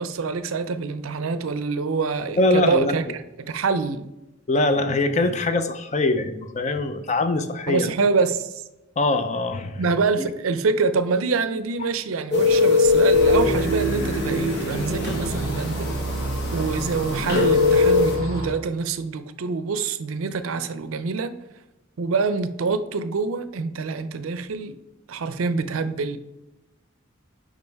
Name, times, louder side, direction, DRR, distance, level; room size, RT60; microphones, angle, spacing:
voice 1, 0.0-3.1 3.4-4.1 7.7-8.5 9.8-15.9 16.5-21.4 22.0-24.8 25.1-26.2, right 4 dB, 80° right, 0.5 m, -25 dB
voice 2, 2.3-2.9 4.5-7.9 9.0-9.8 10.2-10.3, left 2 dB, 35° left, 0.5 m, -23 dB
sound 1, 12.3-18.1, left 4 dB, 55° left, 1.2 m, -22 dB
sound 2, 13.1-18.5, right 2 dB, 85° left, 2.6 m, -28 dB
5.4 x 5.0 x 4.6 m
head